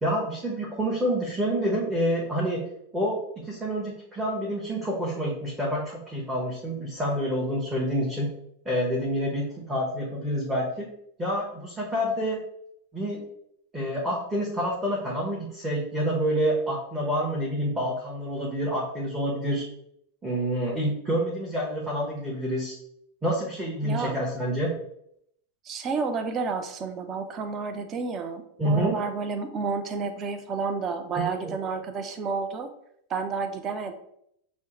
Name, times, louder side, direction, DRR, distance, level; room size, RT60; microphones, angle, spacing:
voice 1, 0.0-2.7 2.9-8.3 8.6-10.9 11.2-12.4 12.9-13.2 13.7-19.6 20.2-22.7 23.2-24.7 28.6-29.0 31.2-31.5, equal, 10° right, -5 dB, 0.8 m, -28 dB
voice 2, 23.8-24.2 25.6-32.7 33.1-33.9, right 4 dB, 30° right, 8 dB, 0.4 m, -30 dB
5.4 x 2.1 x 2.9 m, 0.72 s
figure-of-eight pair, 90°, 0 cm